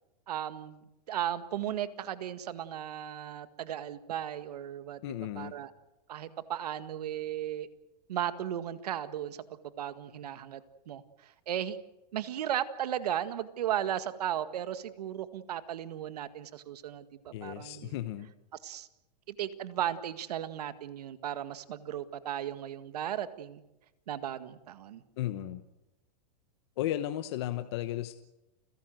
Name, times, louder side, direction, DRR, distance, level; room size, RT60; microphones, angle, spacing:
voice 1, 0.3-5.0 5.4-5.7 6.1-7.7 8.1-9.4 9.8-11.8 12.1-18.0 18.6-18.9 19.3-23.6 24.1-25.0, right 11 dB, 65° right, 12 dB, 1.9 m, -36 dB
voice 2, 5.0-5.5 17.3-18.3 25.2-25.6 26.8-28.1, left 13 dB, 40° left, 10 dB, 1.0 m, -34 dB
29.5 x 17.0 x 7.8 m, 0.96 s
supercardioid pair, 175°, 21 cm